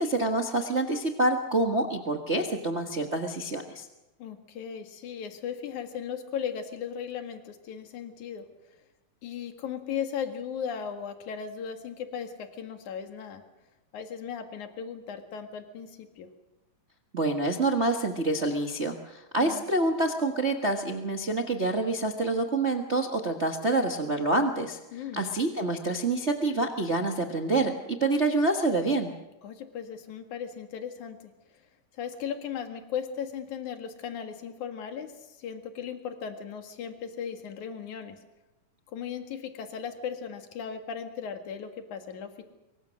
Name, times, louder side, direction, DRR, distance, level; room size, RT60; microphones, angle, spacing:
voice 1, 0.0-3.9 17.1-24.8 25.1-29.1, right 2 dB, 65° right, 3 dB, 0.6 m, -27 dB
voice 2, 4.2-8.4 9.2-13.4 13.9-16.3 19.4-19.6 24.9-25.3 29.4-31.2 32.0-38.2 38.9-42.4, left 7 dB, 60° left, 6 dB, 3.2 m, -37 dB
24.5 x 23.0 x 6.4 m, 1.0 s
omnidirectional pair, 4.0 m